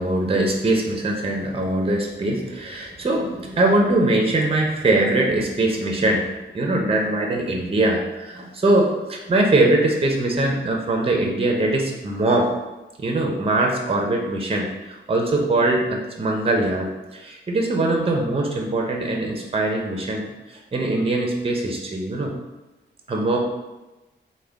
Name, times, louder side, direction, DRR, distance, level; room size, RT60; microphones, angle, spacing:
voice 1, 0.0-12.5 13.0-22.3 23.1-23.4, right 2 dB, 30° right, 1 dB, 0.6 m, -22 dB
3.5 x 2.2 x 3.5 m, 1.1 s
cardioid pair, 75°, 20 cm